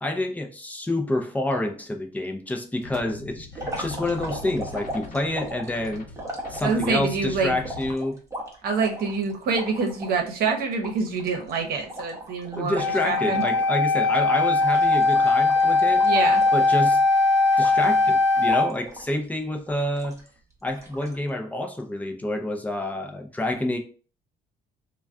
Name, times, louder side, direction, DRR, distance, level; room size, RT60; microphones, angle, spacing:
voice 1, 0.0-6.1 6.5-8.2 12.5-16.0 16.5-17.0 17.6-20.2 20.6-23.8, left 1 dB, 10° left, 0.5 m, -28 dB
sound 1, 2.8-7.9, left 2 dB, 50° left, 0.8 m, -41 dB
sound 2, 3.5-7.1 7.6-10.2 10.5-10.6 10.8-13.8 14.0-14.2 14.6-17.1 17.6-18.1 18.5-19.2 19.7-20.3 20.7-21.2, right 1 dB, 15° right, 0.8 m, -37 dB
voice 2, 6.6-7.5 8.6-13.4 16.0-16.4, right 4 dB, 65° right, 0.9 m, -26 dB
Wind instrument woodwind instrument, 12.8-18.7, left 3 dB, 85° left, 0.6 m, -20 dB
2.3 x 2.2 x 3.5 m
cardioid pair, 110°, 17 cm